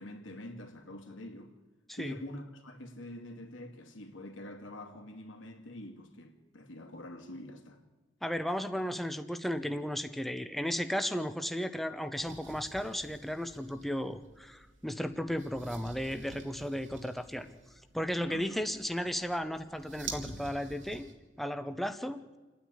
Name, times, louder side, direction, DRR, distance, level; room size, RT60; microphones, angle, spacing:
voice 1, 0.0-1.5 1.9-7.8 18.1-18.6, left 1 dB, 90° left, 2.6 m, -45 dB
voice 2, 8.2-17.5 17.9-21.1 21.4-22.2, equal, ahead, 0.8 m, -34 dB
sound 1, 12.2-21.1, right 4 dB, 80° right, 2.8 m, -49 dB
28.0 x 9.4 x 10.0 m
head